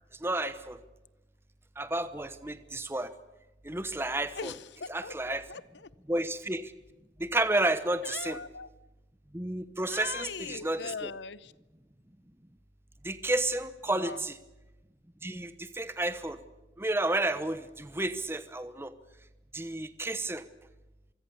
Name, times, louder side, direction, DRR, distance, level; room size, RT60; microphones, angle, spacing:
voice 1, 0.2-0.8 1.8-3.1 3.6-4.5 4.9-5.4 6.1-6.7 7.2-8.4 9.3-11.1 13.0-14.4 15.2-16.4 16.8-18.9 19.5-20.4, right 2 dB, 10° right, 11 dB, 0.9 m, -31 dB
voice 2, 4.3-5.9 8.0-8.7 9.8-11.5 13.9-14.2, left 5 dB, 65° left, 18 dB, 0.8 m, -40 dB
25.0 x 24.0 x 7.0 m, 1.1 s
head